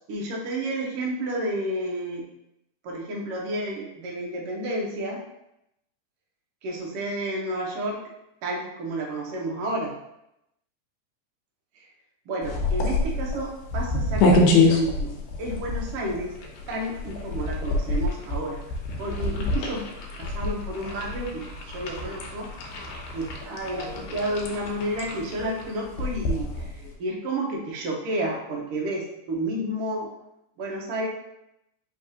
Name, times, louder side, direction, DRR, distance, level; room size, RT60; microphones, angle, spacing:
voice 1, 0.1-2.2 2.8-5.2 6.6-8.0 8.4-9.9 11.8-11.9 12.3-16.3 16.7-18.6 19.0-19.9 20.2-22.5 23.1-30.1 30.6-31.1, right 1 dB, 80° right, -2 dB, 1.3 m, -31 dB
sound 1, 12.4-26.9, left 2 dB, 80° left, 2.2 m, -27 dB
5.2 x 3.1 x 2.7 m, 0.83 s
omnidirectional pair, 3.7 m